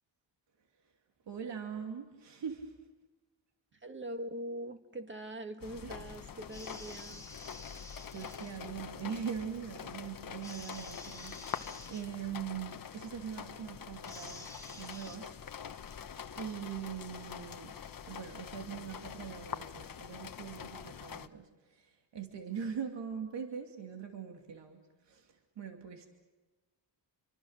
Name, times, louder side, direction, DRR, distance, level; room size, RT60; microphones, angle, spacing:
voice 1, 1.3-2.7 5.8-6.1 8.1-15.3 16.3-17.7 18.0-21.5 21.8-21.9 22.1-24.8 25.1-25.3 25.6-26.1, right 7 dB, 75° right, 3 dB, 2.6 m, -42 dB
voice 2, 3.8-7.3, right 1 dB, 25° right, 6 dB, 2.0 m, -42 dB
sound 1, 5.6-21.3, left 7 dB, 50° left, 1.1 m, -45 dB
sound 2, 6.5-8.7 10.4-12.0 14.0-15.2, left 1 dB, 5° left, 1.8 m, -50 dB
29.0 x 24.0 x 6.6 m, 1.2 s
cardioid pair, 75°, 43 cm